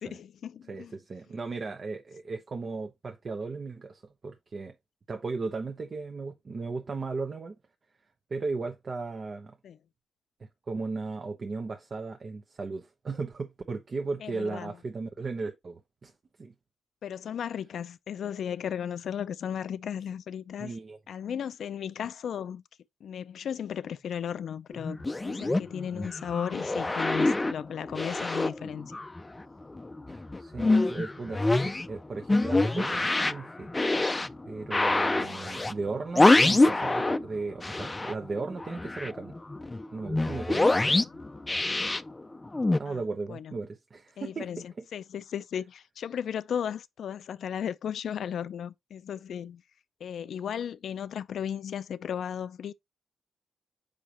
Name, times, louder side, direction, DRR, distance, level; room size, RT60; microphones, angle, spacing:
voice 1, 0.0-0.9 9.6-9.8 14.2-14.8 17.0-20.7 21.1-22.6 23.0-28.9 35.2-35.4 40.9-41.2 42.9-43.0 43.3-43.5 44.2-49.6 50.0-52.7, left 8 dB, 75° left, 0.4 m, -35 dB
voice 2, 0.7-4.7 5.1-7.6 8.3-9.6 10.4-16.1 16.4-16.5 20.6-21.0 30.1-33.9 34.5-39.3 39.9-41.1 42.8-44.5, right 4 dB, 45° right, 0.8 m, -36 dB
sound 1, 24.7-29.4 29.7-37.3 37.6-42.8, left 2 dB, 20° left, 0.5 m, -26 dB
6.6 x 5.0 x 2.9 m
cardioid pair, 70°, 0 cm